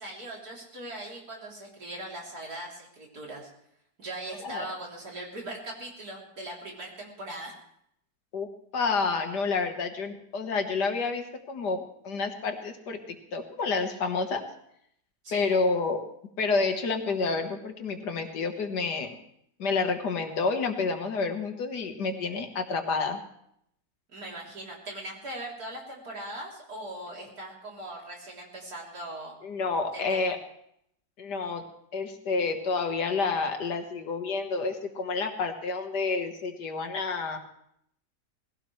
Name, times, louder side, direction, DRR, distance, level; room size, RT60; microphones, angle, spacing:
voice 1, 0.0-3.5 4.0-7.5 15.2-15.5 24.1-29.3 29.9-30.2, right 1 dB, 60° right, -2 dB, 3.8 m, -40 dB
voice 2, 8.7-14.4 15.3-16.0 16.4-19.2 19.6-23.2 29.4-30.4 31.2-31.6 31.9-37.4, left 4 dB, 75° left, 5 dB, 2.0 m, -29 dB
20.0 x 16.5 x 3.2 m, 0.73 s
omnidirectional pair, 1.8 m